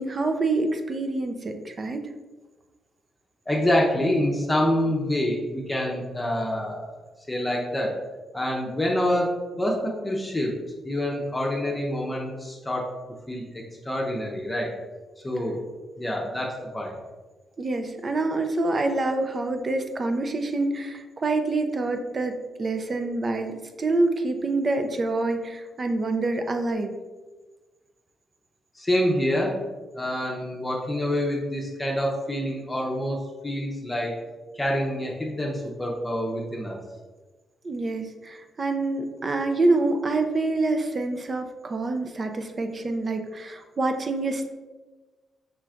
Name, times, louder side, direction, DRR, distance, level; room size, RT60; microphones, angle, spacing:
voice 1, 0.0-2.1 17.6-26.9 37.6-44.5, right 2 dB, 45° right, 6 dB, 0.5 m, -26 dB
voice 2, 3.5-7.0 7.3-7.9 8.3-10.5 10.8-12.9 13.3-14.7 15.2-15.6 16.0-16.9 28.7-29.6 29.9-34.1 34.5-36.8, left 1 dB, 20° left, -2 dB, 0.7 m, -26 dB
4.9 x 3.1 x 2.4 m, 1.3 s
supercardioid pair, 60°, 0 cm